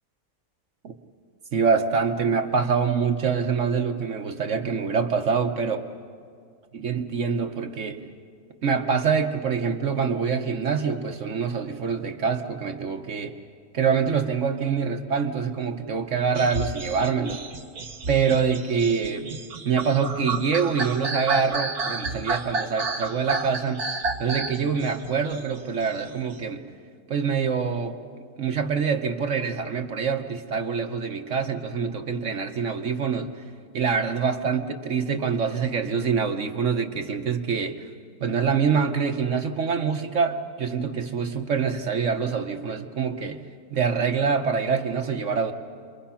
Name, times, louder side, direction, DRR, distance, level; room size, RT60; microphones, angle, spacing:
voice 1, 1.5-5.8 6.7-8.0 8.6-13.3 13.7-17.4 18.1-19.3 19.6-23.8 24.2-26.6 27.1-28.0 28.4-33.3 33.7-37.8 38.2-43.4 43.7-45.5, right 6 dB, 55° right, 6 dB, 1.3 m, -25 dB
sound 1, 16.3-26.4, right 3 dB, 80° right, 2.0 m, -31 dB
29.5 x 23.0 x 5.8 m, 2.1 s
omnidirectional pair, 1.6 m